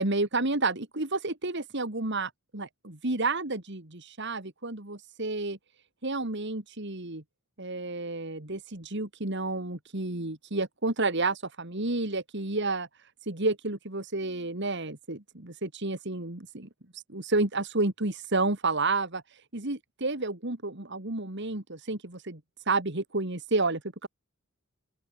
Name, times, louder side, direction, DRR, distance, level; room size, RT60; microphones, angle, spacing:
voice 1, 0.0-5.6 6.0-7.2 7.6-12.9 13.3-16.7 17.1-19.2 19.5-22.4 22.7-24.1, right 3 dB, 60° right, 2.8 m, -30 dB
open air
head